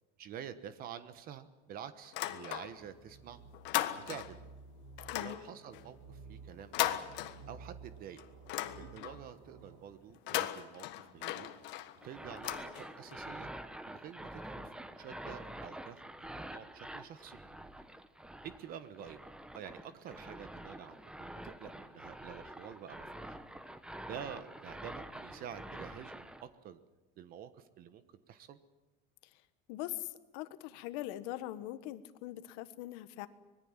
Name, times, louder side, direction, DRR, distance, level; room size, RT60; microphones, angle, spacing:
voice 1, 0.2-3.4 4.0-4.4 5.1-7.0 7.5-8.2 8.8-11.5 12.0-13.5 13.8-17.4 18.4-19.2 19.5-23.4 24.1-26.8 27.2-28.6, right 9 dB, 45° right, 12 dB, 1.2 m, -48 dB
sound 1, 2.0-3.0 3.3-4.5 5.0-7.8 8.2-9.3 10.1-13.2, left 14 dB, 65° left, 1.5 m, -38 dB
sound 2, 2.6-9.8, right 4 dB, 70° right, 2.7 m, -54 dB
sound 3, 12.0-26.4, right 1 dB, 5° right, 1.0 m, -47 dB
voice 2, 29.7-33.3, left 15 dB, 80° left, 12 dB, 1.5 m, -42 dB
25.0 x 21.0 x 7.5 m, 1.1 s
cardioid pair, 145°, 20 cm